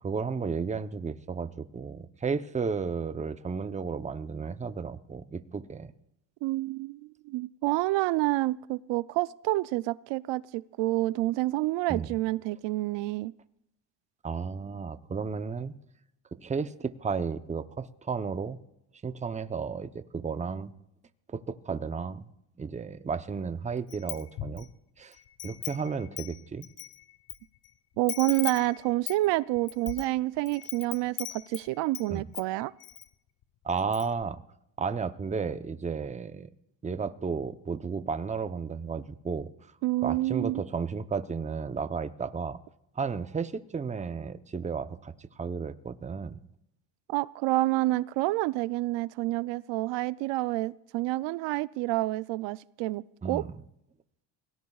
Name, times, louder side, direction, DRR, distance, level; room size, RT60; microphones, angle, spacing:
voice 1, 0.0-5.9 11.9-12.1 14.2-15.7 16.3-18.6 19.0-20.7 21.3-22.3 22.6-24.7 25.0-25.1 25.4-26.7 32.1-32.2 33.6-34.4 34.8-36.5 36.8-39.5 40.0-42.6 43.0-46.4 53.2-53.6, right 5 dB, 15° right, 11 dB, 0.7 m, -33 dB
voice 2, 6.4-13.3 28.0-32.7 39.8-40.6 47.1-53.4, right 18 dB, 75° right, 18 dB, 0.5 m, -28 dB
Wind chime, 23.9-24.7 25.1-27.4 27.6-27.7 28.1-32.1 32.3-33.1 33.4-33.5 33.8-34.2, left 13 dB, 55° left, 0.9 m, -40 dB
26.0 x 18.0 x 2.4 m, 0.82 s
cardioid pair, 110°, 45 cm